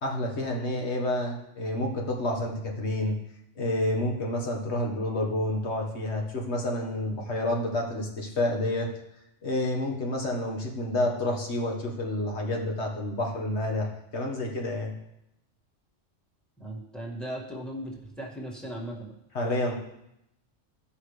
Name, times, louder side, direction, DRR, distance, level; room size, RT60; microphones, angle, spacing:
voice 1, 0.0-3.2 3.5-8.9 9.4-14.9 19.3-19.7, left 1 dB, 60° left, 0 dB, 1.8 m, -29 dB
voice 2, 16.6-19.2, right 1 dB, ahead, -2 dB, 2.0 m, -37 dB
17.0 x 5.8 x 3.3 m, 0.84 s
omnidirectional pair, 1.3 m